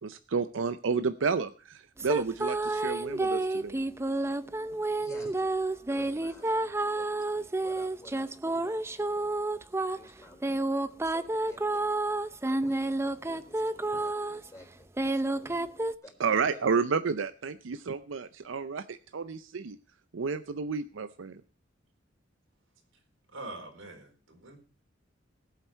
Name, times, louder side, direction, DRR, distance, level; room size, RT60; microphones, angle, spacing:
voice 1, 0.0-3.8 16.2-19.8 20.1-21.4, right 5 dB, 70° right, 12 dB, 0.6 m, -31 dB
sound 1, 2.0-14.5 15.0-15.9, right 2 dB, 15° right, 0.5 m, -30 dB
voice 2, 5.0-5.6 5.9-9.3 9.9-15.6 16.0-16.4, left 1 dB, 15° left, 1 dB, 4.6 m, -53 dB
voice 3, 23.3-24.6, right 2 dB, 90° right, 2 dB, 4.2 m, -44 dB
18.5 x 8.2 x 4.4 m, 0.37 s
head